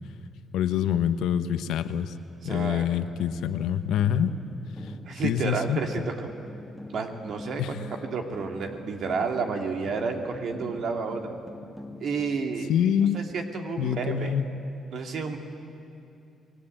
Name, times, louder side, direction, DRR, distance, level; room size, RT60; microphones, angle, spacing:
voice 1, 0.5-2.1 2.4-4.4 4.8-4.9 5.2-5.8 7.6-7.8 12.7-13.2 13.8-14.5, left 9 dB, 85° left, 11 dB, 1.1 m, -26 dB
voice 2, 2.4-2.9 5.0-6.3 6.9-11.4 12.0-12.7 13.1-14.3 14.9-15.4, right 4 dB, 65° right, 4 dB, 2.2 m, -31 dB
sound 1, 4.0-12.3, left 1 dB, ahead, 2.3 m, -44 dB
27.5 x 20.5 x 9.0 m, 2.5 s
cardioid pair, 90°, 0 cm